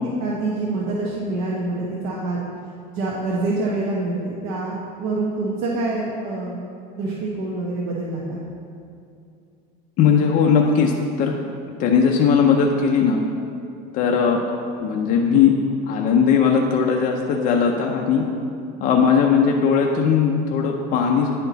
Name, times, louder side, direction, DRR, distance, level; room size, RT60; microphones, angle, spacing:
voice 1, 0.2-2.4 2.9-6.6 7.0-8.4, right 2 dB, 65° right, -4 dB, 0.9 m, -26 dB
voice 2, 10.0-10.9 11.2-11.3 11.8-13.2 13.9-14.4 14.8-15.6 15.9-18.3 18.8-21.4, left 6 dB, 40° left, 0 dB, 0.5 m, -18 dB
9.8 x 4.3 x 4.0 m, 2.5 s
cardioid pair, 145°, 21 cm